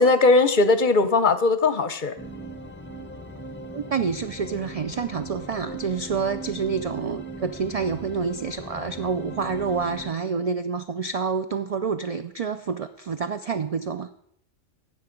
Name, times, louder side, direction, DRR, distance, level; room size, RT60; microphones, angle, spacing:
voice 1, 0.0-2.1, left 3 dB, 50° left, 12 dB, 0.7 m, -19 dB
sound 1, 2.2-10.1, right 2 dB, 15° left, 0.5 m, -38 dB
voice 2, 3.7-14.1, right 5 dB, 75° right, 10 dB, 0.3 m, -28 dB
12.5 x 7.8 x 5.1 m, 0.70 s
omnidirectional pair, 1.2 m